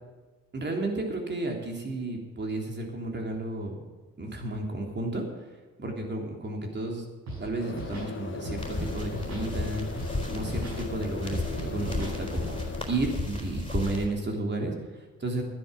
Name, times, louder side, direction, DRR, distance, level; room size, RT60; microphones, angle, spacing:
voice 1, 0.5-3.8 4.2-5.2 5.8-7.1 7.4-9.8 10.3-15.4, right 2 dB, 35° right, 2 dB, 3.4 m, -32 dB
Scratching (performance technique), 7.3-7.4 7.7-8.1 8.4-9.5 10.0-10.1 10.4-10.8 11.3-12.2, right 2 dB, 65° right, 6.2 m, -38 dB
sound 1, 7.6-12.8, left 5 dB, 40° left, 1.4 m, -39 dB
sound 2, 8.6-14.1, left 2 dB, 20° left, 4.0 m, -34 dB
12.5 x 9.9 x 7.6 m, 1.2 s
cardioid pair, 90°, 30 cm